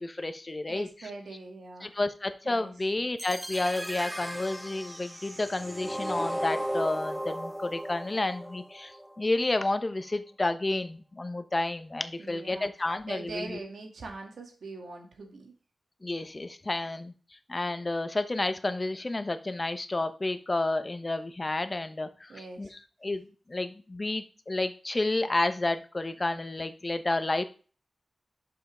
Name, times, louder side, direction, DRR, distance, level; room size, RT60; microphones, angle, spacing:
voice 1, 0.0-0.9 1.8-8.9 9.2-13.6 16.0-17.1 17.5-23.2 23.5-27.4, left 2 dB, 35° left, 10 dB, 0.9 m, -30 dB
voice 2, 0.6-2.0 2.4-2.7 12.2-12.7 13.1-15.5 22.3-22.7, right 3 dB, 90° right, 2 dB, 1.9 m, -42 dB
sound 1, 3.2-9.2, equal, 5° right, 0.6 m, -36 dB
6.9 x 5.6 x 3.8 m, 0.38 s
wide cardioid pair, 70°, 0 cm